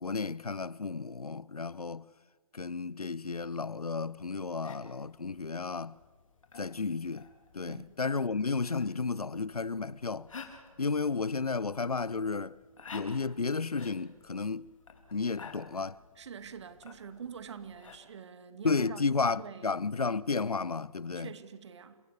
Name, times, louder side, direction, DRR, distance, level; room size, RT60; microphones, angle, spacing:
voice 1, 0.0-2.0 2.5-6.0 6.6-7.3 7.5-10.3 10.8-12.6 12.9-14.7 15.1-16.0 18.6-21.3, left 4 dB, 85° left, 0.7 m, -32 dB
sound 1, 4.0-18.0, left 5 dB, 60° left, 3.7 m, -53 dB
voice 2, 16.2-19.1 19.4-19.8 21.1-22.0, right 7 dB, 50° right, 2.3 m, -45 dB
30.0 x 17.0 x 8.4 m
figure-of-eight pair, 135°, 19 cm